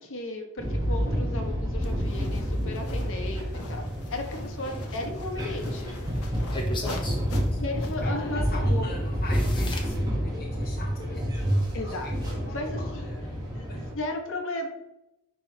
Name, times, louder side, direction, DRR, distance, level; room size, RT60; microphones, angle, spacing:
voice 1, 0.0-6.5 7.6-8.9 11.7-13.1 13.5-14.7, left 2 dB, 65° left, 3 dB, 1.4 m, -35 dB
sound 1, 0.6-13.9, equal, 20° right, 1.7 m, -29 dB
sound 2, 1.8-8.1, left 2 dB, 80° left, 1.1 m, -44 dB
sound 3, 4.4-5.7 6.5-7.2 8.7-8.8 9.3-10.0, left 1 dB, 20° left, 1.2 m, -37 dB
voice 2, 7.4-13.4 13.7-13.9, left 2 dB, 45° left, -2 dB, 0.9 m, -43 dB
10.5 x 3.6 x 3.4 m, 0.88 s
head